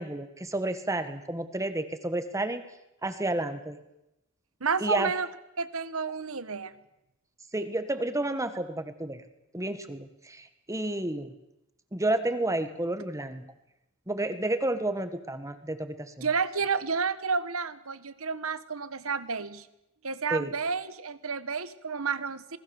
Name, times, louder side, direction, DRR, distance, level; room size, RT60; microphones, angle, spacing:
voice 1, 0.0-2.7 3.0-3.8 4.8-5.1 7.5-9.2 9.5-11.3 11.9-13.5 14.1-16.3 20.3-20.5, right 1 dB, 15° right, 9 dB, 1.6 m, -31 dB
voice 2, 4.6-5.3 5.6-6.7 16.2-19.7 20.0-22.6, right 5 dB, 70° right, 13 dB, 1.4 m, -30 dB
27.0 x 19.5 x 7.2 m, 0.87 s
head